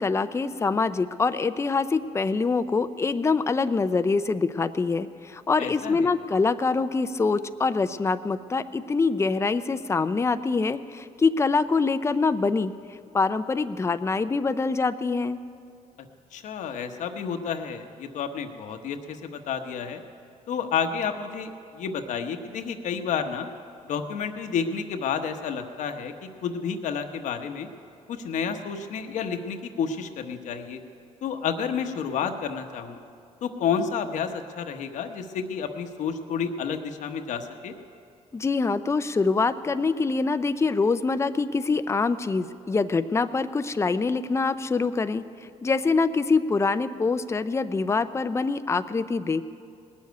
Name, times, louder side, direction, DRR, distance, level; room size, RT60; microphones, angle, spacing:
voice 1, 0.0-12.7 13.1-15.4 38.3-45.2 45.6-49.4, left 4 dB, 20° left, 11 dB, 0.5 m, -25 dB
voice 2, 5.6-6.1 16.3-20.0 20.5-23.5 23.9-27.7 28.1-30.8 31.2-33.0 33.4-37.7, left 6 dB, 75° left, 6 dB, 1.1 m, -30 dB
19.0 x 7.3 x 9.3 m, 2.4 s
cardioid pair, 100°, 13 cm